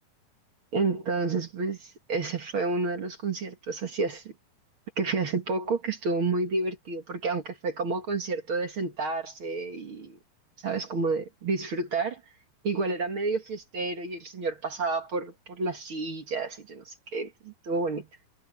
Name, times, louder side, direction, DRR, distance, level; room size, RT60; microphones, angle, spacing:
voice 1, 0.7-4.3 5.0-10.2 10.6-12.2 12.6-18.1, right 3 dB, 45° right, 2.2 m, -30 dB
omnidirectional pair, 4.1 m